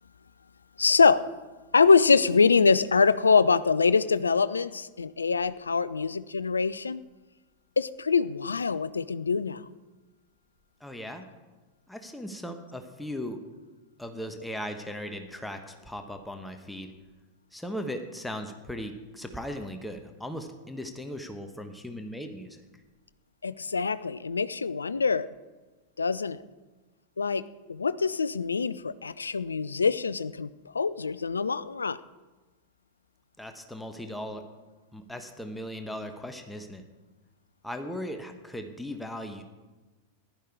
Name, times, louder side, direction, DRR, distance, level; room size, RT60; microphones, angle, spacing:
voice 1, 0.8-1.3 1.7-7.0 7.8-9.7 23.4-25.3 26.0-26.4 27.2-30.5 30.7-32.0, left 5 dB, 75° left, 17 dB, 0.5 m, -24 dB
voice 2, 10.8-11.2 11.9-13.4 14.0-16.9 17.5-22.6 33.4-34.4 34.9-36.8 37.6-39.4, equal, 5° left, 6 dB, 1.3 m, -38 dB
15.0 x 11.5 x 4.8 m, 1.2 s
figure-of-eight pair, 90°, 0 cm